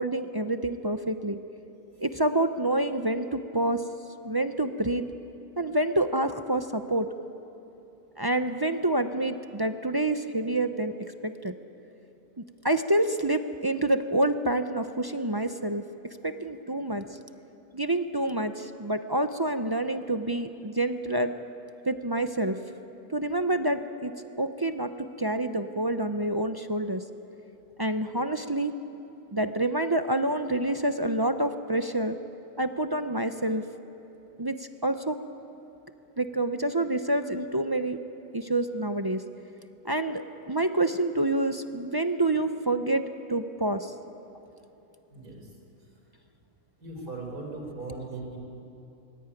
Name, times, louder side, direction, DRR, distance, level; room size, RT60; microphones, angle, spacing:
voice 1, 0.0-1.4 2.0-3.8 4.2-5.1 5.6-7.1 8.2-11.5 12.6-17.0 17.7-21.3 21.9-22.6 23.1-27.0 27.8-28.7 29.3-32.2 32.6-33.6 34.4-35.2 36.2-38.0 38.3-39.2 39.8-43.0 43.3-43.9, right 1 dB, 30° right, 8 dB, 0.4 m, -27 dB
voice 2, 45.1-45.5 46.8-48.4, right 3 dB, 90° right, 0 dB, 5.4 m, -38 dB
24.0 x 20.0 x 9.1 m, 2.9 s
omnidirectional pair, 1.6 m